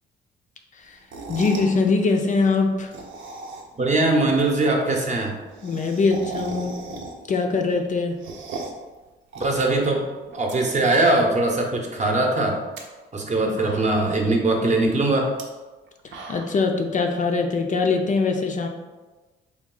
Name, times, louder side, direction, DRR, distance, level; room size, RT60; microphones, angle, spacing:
sound 1, 1.0-1.8 2.7-3.9 4.2-4.3 4.5-4.6 4.8-4.9 5.2-7.4 7.8-8.9 9.3-10.6 10.8-11.4 11.8-11.9 12.5-12.8 13.3-13.4 13.6-14.2 15.3-15.4 15.9-16.7, right 3 dB, 75° right, 0.6 m, -37 dB
voice 1, 1.3-2.9 5.6-7.0 7.3-8.2 16.0-18.7, left 4 dB, 40° left, 3 dB, 0.4 m, -22 dB
voice 2, 3.7-5.3 9.4-10.0 10.3-12.6 13.1-15.3, right 2 dB, 35° right, 1 dB, 0.7 m, -21 dB
3.5 x 2.3 x 3.7 m, 1.2 s
cardioid pair, 90°, 20 cm